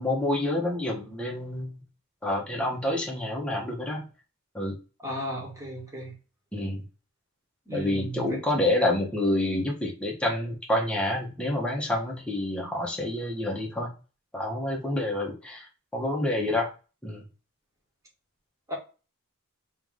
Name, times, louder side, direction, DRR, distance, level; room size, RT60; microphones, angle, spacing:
voice 1, 0.0-1.8 2.2-4.0 4.5-4.7 6.5-6.8 7.7-13.9 14.3-16.7 17.0-17.2, left 1 dB, 5° left, -2 dB, 1.1 m, -28 dB
voice 2, 5.0-6.1 7.7-8.4 18.7-18.8, equal, 15° right, -3 dB, 1.7 m, -35 dB
3.4 x 3.2 x 3.7 m, 0.32 s
head